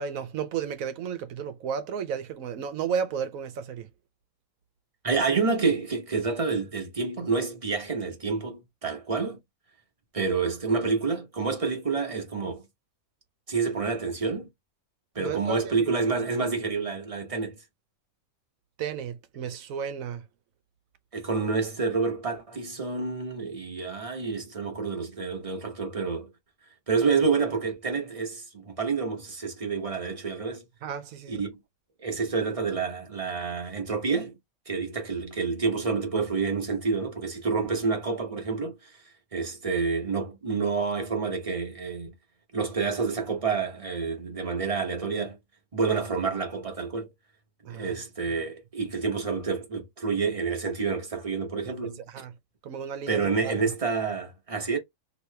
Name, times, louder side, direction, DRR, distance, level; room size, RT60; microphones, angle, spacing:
voice 1, 0.0-3.9 15.2-15.9 18.8-20.2 30.8-31.4 47.6-48.0 51.7-52.3 52.6-53.7, right 7 dB, 80° right, 1.1 m, -33 dB
voice 2, 5.0-9.4 10.1-12.6 13.5-14.5 15.1-17.6 21.1-26.3 26.9-30.6 31.3-31.5 32.0-34.3 34.7-38.9 39.3-42.1 42.5-45.4 45.7-47.1 47.7-52.0 53.1-54.8, right 4 dB, 30° right, 1.0 m, -28 dB
3.0 x 2.9 x 3.2 m
omnidirectional pair, 1.5 m